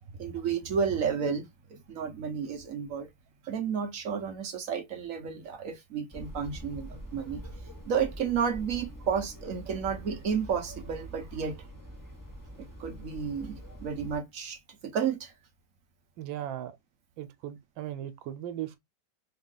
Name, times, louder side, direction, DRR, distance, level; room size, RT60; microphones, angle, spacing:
voice 1, 0.2-3.1 3.4-7.4 7.9-11.7 12.6-15.3, right 7 dB, 60° right, 0.9 m, -32 dB
sound 1, 6.1-14.2, right 1 dB, 30° left, 0.3 m, -45 dB
voice 2, 16.2-16.7 17.2-18.8, right 11 dB, 90° right, 1.4 m, -37 dB
3.5 x 2.3 x 3.8 m
omnidirectional pair, 2.1 m